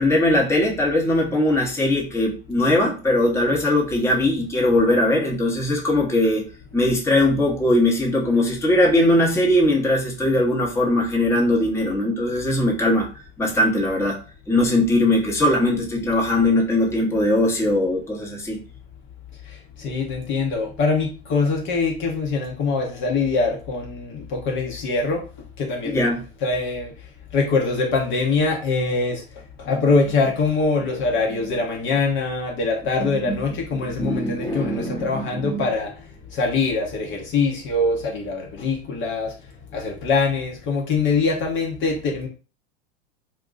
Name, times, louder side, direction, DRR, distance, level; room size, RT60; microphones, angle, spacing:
voice 1, 0.0-6.4 6.7-13.1 13.4-14.2 14.5-18.6 25.8-26.2 33.0-33.4 33.7-35.7, left 1 dB, 10° left, 0.9 m, -20 dB
voice 2, 19.8-25.2 25.6-26.0 26.4-26.9 27.3-29.2 29.6-35.9 36.3-39.3 39.7-42.3, left 4 dB, 40° left, 0.9 m, -23 dB
2.5 x 2.3 x 3.8 m
hypercardioid pair, 100°, 31 cm